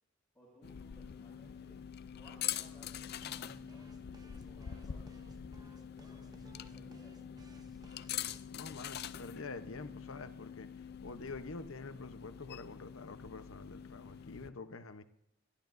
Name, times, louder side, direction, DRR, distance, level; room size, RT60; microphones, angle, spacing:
voice 1, 0.3-1.8 2.1-7.4, equal, 5° left, -7 dB, 6.7 m, -62 dB
sound 1, 0.6-14.5, left 9 dB, 50° left, 0.4 m, -45 dB
sound 2, 3.1-8.4, right 1 dB, 20° right, 0.7 m, -58 dB
voice 2, 8.4-15.0, left 3 dB, 80° left, 9 dB, 0.9 m, -47 dB
28.5 x 11.5 x 2.7 m, 0.80 s
head